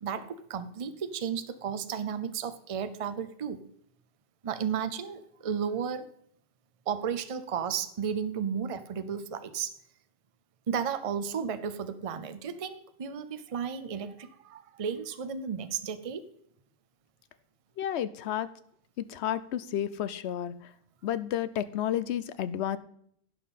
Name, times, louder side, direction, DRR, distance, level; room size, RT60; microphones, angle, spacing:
voice 1, 0.0-3.6 4.4-6.1 6.9-9.7 10.7-16.3, right 7 dB, 40° right, 12 dB, 0.6 m, -33 dB
voice 2, 17.8-18.5 19.0-20.7 21.0-22.8, left 10 dB, 85° left, 15 dB, 0.9 m, -31 dB
16.0 x 5.8 x 4.2 m, 0.68 s
omnidirectional pair, 1.1 m